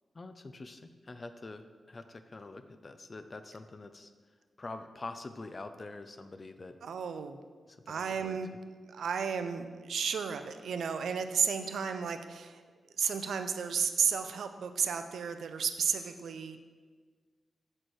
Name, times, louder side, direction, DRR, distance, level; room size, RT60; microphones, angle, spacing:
voice 1, 0.1-4.1 4.6-6.8 7.7-8.4, left 2 dB, 30° left, 9 dB, 0.3 m, -45 dB
voice 2, 6.8-7.4 7.9-8.5 8.9-12.6 13.0-16.6, right 6 dB, 85° right, 9 dB, 0.4 m, -33 dB
6.4 x 4.2 x 4.6 m, 1.5 s
wide cardioid pair, 125°, 0 cm